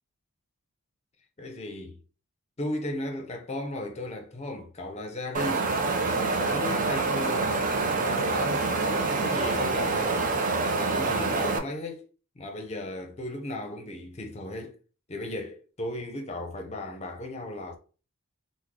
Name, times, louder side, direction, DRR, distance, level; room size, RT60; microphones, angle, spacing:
voice 1, 1.4-2.0 2.6-5.7 6.0-7.6 7.9-10.3 10.7-12.0 12.4-14.8 15.1-17.8, left 1 dB, 30° left, 0.6 m, -36 dB
Wind, 5.3-11.6, right 3 dB, 40° right, 0.5 m, -26 dB
3.1 x 2.1 x 3.6 m
head